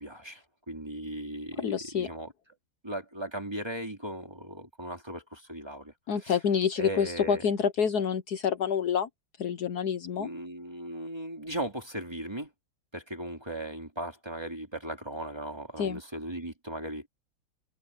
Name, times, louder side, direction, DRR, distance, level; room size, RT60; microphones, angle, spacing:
voice 1, 0.0-2.3 2.8-5.9 6.2-6.4 6.8-7.4 10.2-12.5 12.9-17.1, right 1 dB, 15° right, 2.5 m, -37 dB
voice 2, 1.6-2.1 6.1-9.1 9.4-10.3 15.8-16.0, left 7 dB, 65° left, 1.4 m, -28 dB
omnidirectional pair, 2.0 m